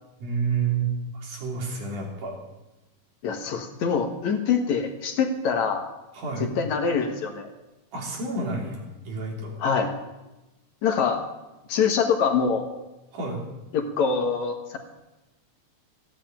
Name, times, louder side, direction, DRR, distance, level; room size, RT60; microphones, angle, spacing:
voice 1, 0.2-2.3 6.1-6.5 7.9-9.6 13.1-13.4, right 4 dB, 85° right, -2 dB, 4.8 m, -29 dB
voice 2, 3.2-5.8 6.4-7.5 9.6-9.9 10.8-11.2 11.7-12.7 13.7-14.8, left 6 dB, 70° left, 4 dB, 2.8 m, -24 dB
15.5 x 9.3 x 8.9 m, 1.0 s
omnidirectional pair, 3.5 m